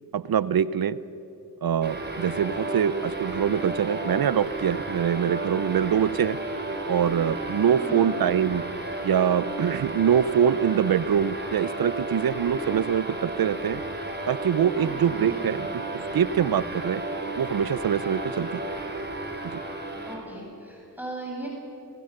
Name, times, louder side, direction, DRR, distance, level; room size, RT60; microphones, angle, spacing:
voice 1, 0.1-1.0 1.6-6.4 6.9-8.6 9.0-13.8 14.3-15.7 16.1-17.0 17.4-18.6 19.4-19.6, right 8 dB, 65° right, 18 dB, 0.8 m, -24 dB
sound 1, 1.8-20.2, right 2 dB, 25° right, 4.3 m, -33 dB
voice 2, 15.2-15.6 20.0-21.5, right 2 dB, 5° right, -2 dB, 7.3 m, -37 dB
29.5 x 16.5 x 6.7 m, 2.9 s
cardioid pair, 50°, 40 cm